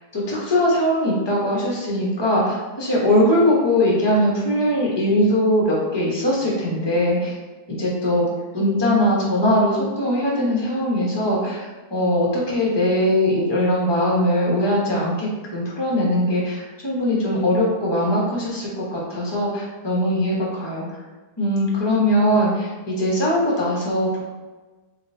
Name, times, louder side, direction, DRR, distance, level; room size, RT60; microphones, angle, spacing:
voice 1, 0.1-7.3 7.7-8.3 8.5-11.7 11.9-20.8 21.4-24.2, left 1 dB, 20° left, -4 dB, 0.7 m, -21 dB
5.4 x 2.5 x 2.7 m, 1.2 s
omnidirectional pair, 1.7 m